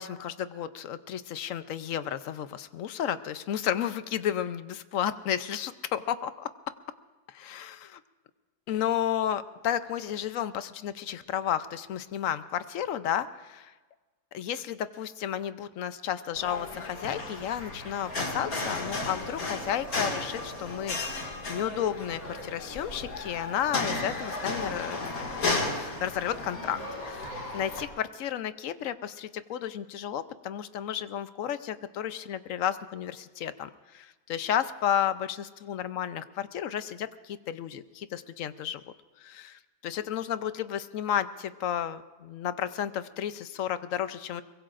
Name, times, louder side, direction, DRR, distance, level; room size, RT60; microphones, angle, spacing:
voice 1, 0.0-6.5 7.3-8.0 8.7-13.7 14.3-25.4 25.7-26.8 27.1-44.4, left 10 dB, 70° left, 13 dB, 1.0 m, -32 dB
sound 1, 16.3-27.8, left 2 dB, 85° left, 2.6 m, -34 dB
23.5 x 21.5 x 2.5 m, 1.3 s
omnidirectional pair, 1.5 m